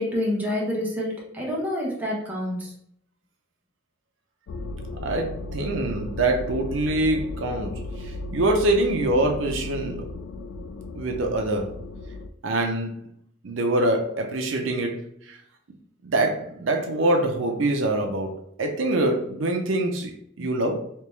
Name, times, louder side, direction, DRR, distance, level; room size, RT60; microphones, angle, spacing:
voice 1, 0.0-2.7, left 1 dB, 10° right, -4 dB, 1.0 m, -27 dB
sound 1, 4.5-12.3, left 2 dB, 70° left, 0.3 m, -35 dB
voice 2, 5.0-10.0 10.9-11.8 12.4-13.1 13.4-15.4 16.0-20.9, right 2 dB, 85° right, 3 dB, 0.6 m, -25 dB
3.4 x 2.9 x 3.1 m, 0.67 s
head